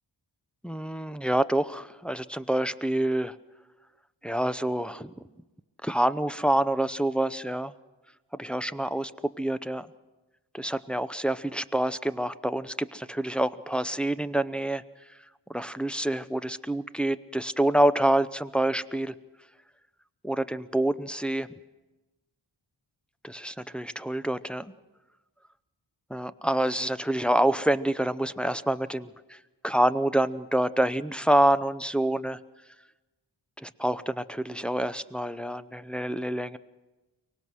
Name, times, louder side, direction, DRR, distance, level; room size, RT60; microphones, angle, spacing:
voice 1, 0.6-3.4 4.2-5.1 5.8-7.7 8.4-9.9 10.5-14.8 15.5-19.1 20.2-21.5 23.2-24.7 26.1-29.4 29.6-32.4 33.6-36.6, right 1 dB, ahead, 12 dB, 0.6 m, -27 dB
24.0 x 19.0 x 6.2 m, 1.1 s
cardioid pair, 55°, 46 cm